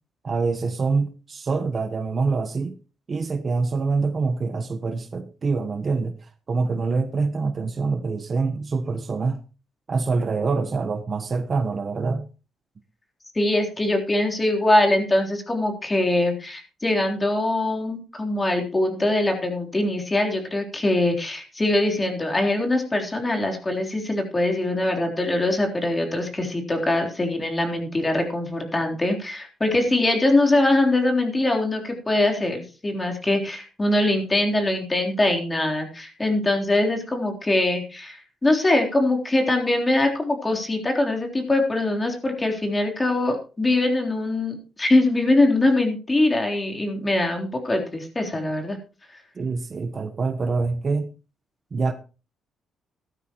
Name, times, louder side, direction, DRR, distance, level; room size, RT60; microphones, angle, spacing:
voice 1, 0.2-2.8 3.1-9.4 9.9-12.3 49.3-51.1 51.7-51.9, right 4 dB, 40° right, 1.1 m, -25 dB
voice 2, 13.4-48.8, left 2 dB, 20° left, 3.6 m, -22 dB
15.5 x 12.5 x 3.0 m
cardioid pair, 90°, 0 cm